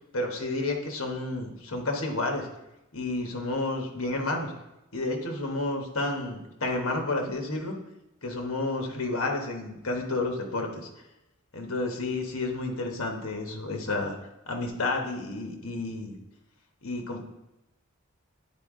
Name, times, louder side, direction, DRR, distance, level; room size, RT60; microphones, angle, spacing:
voice 1, 0.1-2.5 2.9-4.5 4.9-7.7 8.2-10.8 11.5-14.1 14.5-16.1 16.8-17.2, left 2 dB, 70° left, 2 dB, 1.2 m, -30 dB
9.7 x 4.4 x 3.7 m, 0.94 s
head